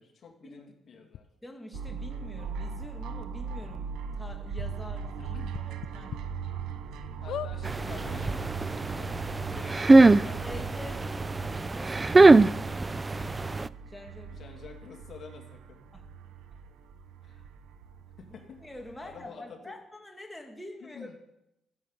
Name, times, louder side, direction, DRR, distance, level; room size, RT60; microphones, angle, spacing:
voice 1, 0.0-1.3 5.2-5.6 7.2-10.9 14.3-15.8 17.2-17.4 18.2-18.6 19.0-19.7 20.8-21.1, left 6 dB, 55° left, 2 dB, 2.5 m, -48 dB
sound 1, 1.1-1.2 1.7-1.8 2.8-2.9 3.2-3.3 3.7-3.8 5.5-6.2 6.7-6.8 7.3-7.5 8.4-8.5 8.7-8.8, left 10 dB, 75° left, 0.5 m, -37 dB
voice 2, 1.4-6.2 10.4-11.0 11.3-13.6 13.9-14.4 15.9-16.0 18.3-18.4 18.6-21.2, left 1 dB, 10° left, 2 dB, 2.2 m, -46 dB
sound 2, 1.7-19.3, right 6 dB, 90° right, 0.9 m, -40 dB
sound 3, 7.6-13.7, right 3 dB, 25° right, 0.4 m, -22 dB
15.0 x 7.9 x 7.3 m, 0.85 s
cardioid pair, 90°, 0 cm